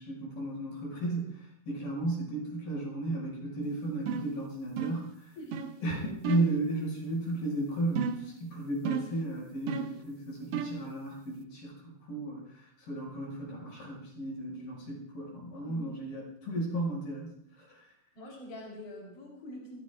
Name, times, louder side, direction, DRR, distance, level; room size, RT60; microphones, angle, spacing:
voice 1, 0.0-5.3 5.8-17.3 17.6-17.8, right 2 dB, 80° left, -3 dB, 8.2 m, -34 dB
sound 1, 4.1-4.4 4.8-5.1 5.5-5.8 6.2-6.6 8.0-8.3 8.9-9.2 9.7-10.0 10.5-10.9, right 7 dB, 80° right, 1.3 m, -33 dB
voice 2, 18.2-19.8, left 1 dB, 40° left, -3 dB, 5.1 m, -45 dB
27.5 x 16.5 x 2.5 m, 0.69 s
omnidirectional pair, 4.1 m